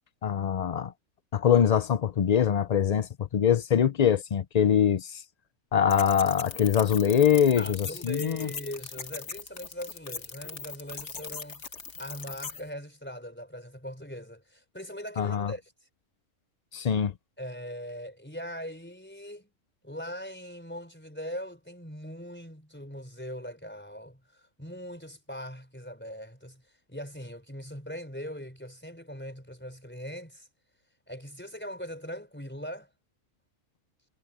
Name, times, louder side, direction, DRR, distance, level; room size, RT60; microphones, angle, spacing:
voice 1, 0.2-0.9 1.3-5.2 5.7-8.5 15.2-15.5 16.7-17.1, left 8 dB, 75° left, 0.3 m, -23 dB
sound 1, 5.9-12.6, left 5 dB, 55° left, 1.7 m, -40 dB
voice 2, 7.6-11.6 12.0-15.7 17.4-19.5 19.8-26.6 26.9-30.5 31.1-32.9, equal, 5° left, 4.2 m, -40 dB
omnidirectional pair, 1.5 m